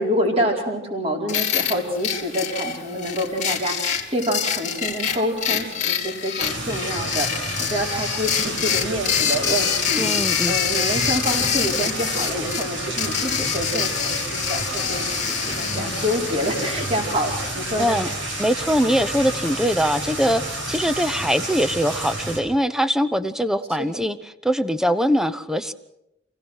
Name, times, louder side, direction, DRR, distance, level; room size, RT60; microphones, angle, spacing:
voice 1, 0.0-18.0 23.8-24.1, equal, 35° right, 0 dB, 4.5 m, -27 dB
sound 1, 1.3-18.3, left 8 dB, 45° left, 2.5 m, -26 dB
sound 2, 6.4-22.4, right 1 dB, 85° right, 5.1 m, -30 dB
voice 2, 10.0-10.6 17.8-18.1 18.4-20.4 20.7-24.2 24.4-25.7, equal, 5° right, 11 dB, 0.8 m, -22 dB
28.0 x 17.0 x 6.4 m, 0.86 s
head